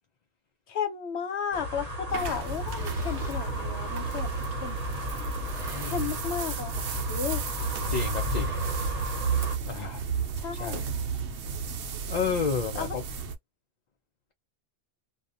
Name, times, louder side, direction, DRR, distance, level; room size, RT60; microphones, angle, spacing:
voice 1, 0.7-4.3 4.6-4.8 5.8-7.4 10.4-10.9 12.7-13.0, left 7 dB, 80° left, 1.0 m, -33 dB
sound 1, 1.5-9.6, left 1 dB, 40° right, 0.9 m, -34 dB
sound 2, 2.1-13.3, right 6 dB, 85° right, 0.9 m, -33 dB
sound 3, 2.5-3.5 4.2-4.3 5.2-6.3 6.6-6.9 7.1-7.2 8.1-9.2, equal, 5° right, 1.1 m, -47 dB
voice 2, 5.7-6.1 7.9-8.6 9.6-10.0 10.6-10.9 12.1-13.0, left 6 dB, 55° left, 0.5 m, -31 dB
2.3 x 2.2 x 2.5 m
omnidirectional pair, 1.1 m